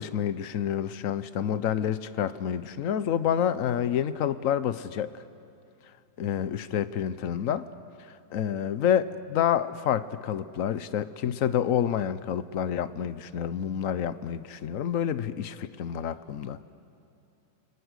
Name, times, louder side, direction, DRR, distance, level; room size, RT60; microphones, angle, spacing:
voice 1, 0.0-5.1 6.2-7.7 8.3-16.6, left 9 dB, 60° left, 14 dB, 0.9 m, -28 dB
30.0 x 23.5 x 6.4 m, 2.7 s
omnidirectional pair, 2.1 m